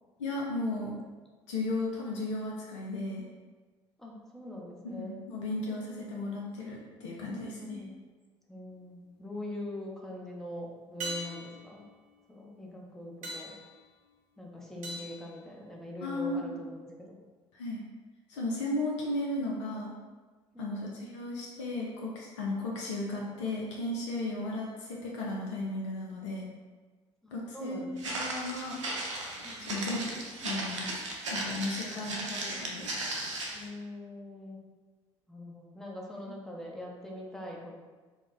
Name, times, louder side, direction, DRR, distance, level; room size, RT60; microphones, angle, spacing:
voice 1, 0.2-1.0 1.5-3.2 5.0-7.8 16.0-16.6 17.5-17.8 18.3-19.9 20.6-26.5 27.3-27.8 28.1-28.8 29.6-31.0 31.3-32.9, left 2 dB, 75° left, -3 dB, 0.5 m, -35 dB
voice 2, 4.0-5.2 7.3-7.9 8.5-11.8 12.3-13.5 14.4-17.2 20.5-20.9 27.2-28.2 29.4-29.8 31.9-32.0 32.3-33.0 33.5-34.6 35.3-37.7, left 1 dB, 5° left, -3 dB, 0.7 m, -43 dB
sound 1, 8.7-9.3 11.0-16.2 20.6-20.7, right 1 dB, 50° right, 0.9 m, -44 dB
Walk footsteps, 28.0-33.7, right 2 dB, 80° right, 0.5 m, -36 dB
2.3 x 2.1 x 3.9 m, 1.4 s
figure-of-eight pair, 60°, 15 cm